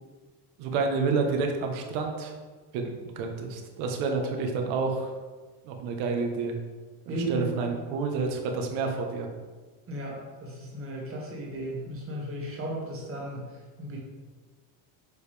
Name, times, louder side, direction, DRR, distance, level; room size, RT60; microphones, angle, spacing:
voice 1, 0.6-2.3 2.7-2.9 3.2-5.1 5.6-6.6 7.1-9.3, right 4 dB, 70° right, 3 dB, 1.3 m, -29 dB
voice 2, 7.1-7.7 9.9-14.0, right 1 dB, 25° right, -3 dB, 2.0 m, -35 dB
6.7 x 4.8 x 3.5 m, 1.4 s
cardioid pair, 130°, 49 cm